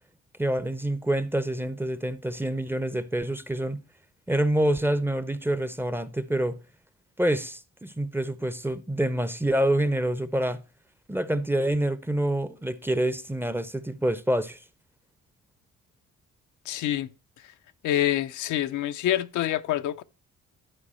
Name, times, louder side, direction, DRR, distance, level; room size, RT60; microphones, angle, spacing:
voice 1, 0.4-3.8 4.3-6.6 7.2-10.6 11.1-14.6, right 1 dB, 5° right, 0.6 m, -27 dB
voice 2, 16.7-17.1 17.8-20.0, left 12 dB, 75° left, 0.6 m, -26 dB
11.0 x 4.6 x 4.2 m
cardioid pair, 90°, 30 cm